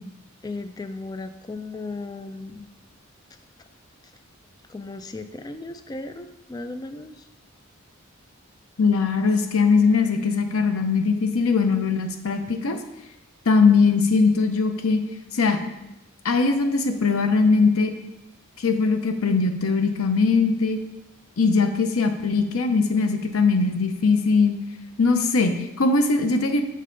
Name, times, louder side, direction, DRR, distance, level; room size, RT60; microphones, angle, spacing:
voice 1, 0.4-2.7 4.7-7.3, left 2 dB, 20° left, 8 dB, 0.3 m, -36 dB
voice 2, 8.8-12.8 13.5-15.0 15.3-15.6 16.2-17.9 18.6-20.8 21.4-24.6 25.0-26.6, left 4 dB, 80° left, 7 dB, 0.7 m, -20 dB
6.4 x 5.5 x 3.8 m, 0.93 s
head